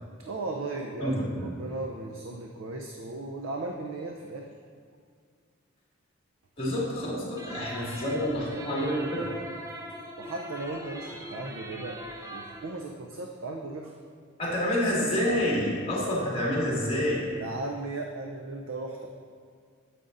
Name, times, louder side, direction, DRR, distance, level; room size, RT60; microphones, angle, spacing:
voice 1, 0.2-4.5 7.6-7.8 8.0-8.1 8.5-9.0 10.2-13.9 17.4-19.1, right 2 dB, 90° right, 2 dB, 0.6 m, -37 dB
voice 2, 1.0-1.5 6.6-9.3 14.4-17.3, equal, 30° left, -5 dB, 2.0 m, -28 dB
sound 1, 7.4-12.7, equal, 15° right, 0.6 m, -41 dB
9.2 x 8.3 x 2.6 m, 2.1 s
head